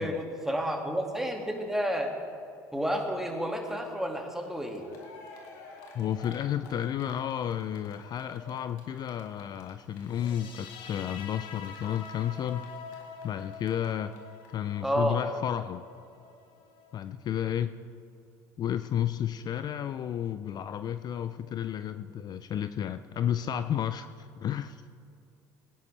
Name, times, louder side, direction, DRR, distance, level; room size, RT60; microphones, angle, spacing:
voice 1, 0.0-2.1 2.7-4.9 14.8-15.2, equal, 5° right, 2 dB, 2.1 m, -30 dB
Cheering, 4.4-4.5 4.7-13.9 14.1-14.2 14.4-14.5, left 3 dB, 80° left, 2.1 m, -51 dB
voice 2, 5.9-12.7 13.2-14.1 14.5-15.8 16.9-17.8 18.6-24.8, left 10 dB, 45° left, 12 dB, 0.4 m, -32 dB
sound 1, 10.1-17.1, left 6 dB, 60° left, 1.3 m, -46 dB
19.5 x 10.0 x 3.3 m, 2.6 s
hypercardioid pair, 80°, 10 cm